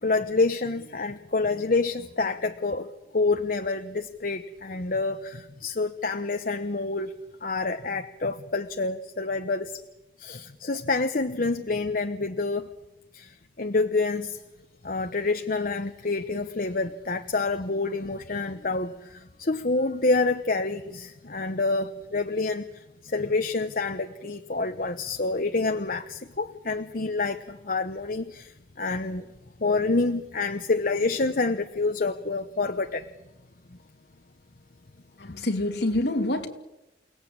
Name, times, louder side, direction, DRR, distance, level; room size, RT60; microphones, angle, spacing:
voice 1, 0.0-7.1 7.4-9.8 10.2-12.7 13.1-14.4 14.8-29.3 29.6-33.1 35.3-35.4, left 3 dB, 50° left, 0.9 m, -28 dB
voice 2, 35.2-36.5, left 1 dB, 70° left, 2.6 m, -26 dB
29.0 x 18.0 x 8.8 m
head